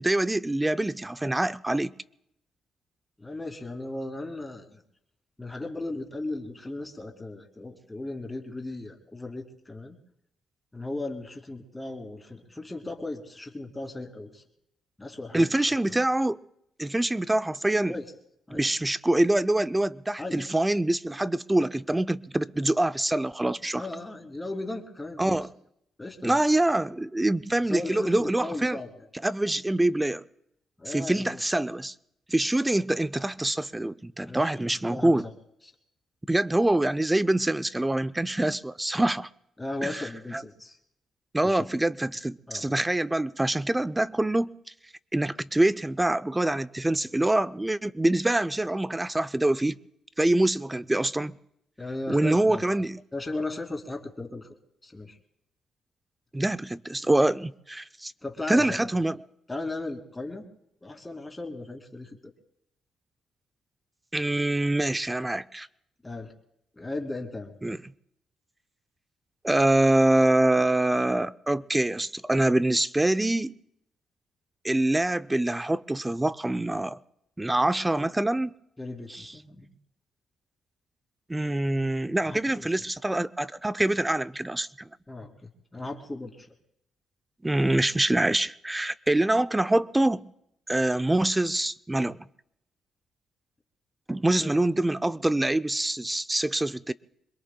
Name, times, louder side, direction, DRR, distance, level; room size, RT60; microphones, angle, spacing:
voice 1, 0.0-1.9 15.3-16.4 16.8-18.0 18.5-23.8 25.2-25.5 26.2-28.8 29.2-30.2 30.9-31.9 32.3-35.2 36.3-39.3 39.8-40.1 40.3-40.4 41.3-44.5 45.1-49.8 50.2-51.4 52.1-53.0 56.3-58.1 58.5-59.2 64.1-65.7 67.6-67.8 69.4-73.5 74.6-77.0 77.4-78.5 79.1-79.3 81.3-84.9 87.4-90.3 90.7-92.2 94.1-96.9, right 1 dB, 10° right, 0.5 m, -25 dB
voice 2, 3.2-4.8 5.4-10.0 10.7-14.4 15.0-15.9 17.9-18.0 18.5-18.6 20.2-20.5 23.8-25.4 26.0-26.4 27.7-28.9 30.8-31.4 34.2-34.6 34.9-35.3 35.6-35.7 39.6-40.8 41.4-41.6 42.5-42.8 51.8-52.6 53.1-54.5 54.8-55.2 58.2-58.9 59.5-60.5 60.8-62.3 66.0-66.3 66.8-67.5 78.8-79.7 82.3-82.7 85.1-86.5 94.4-94.5, left 2 dB, 15° left, 2.5 m, -36 dB
26.5 x 22.0 x 2.3 m
cardioid pair, 90°, 0 cm